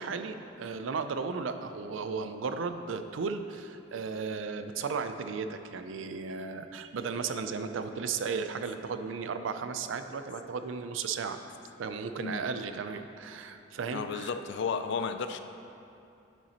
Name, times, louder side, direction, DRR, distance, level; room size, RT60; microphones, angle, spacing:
voice 1, 0.0-11.4 11.8-14.3, right 5 dB, 90° right, 9 dB, 0.4 m, -35 dB
voice 2, 13.9-15.4, left 5 dB, 65° left, 9 dB, 0.4 m, -33 dB
9.2 x 7.0 x 2.9 m, 2.7 s
head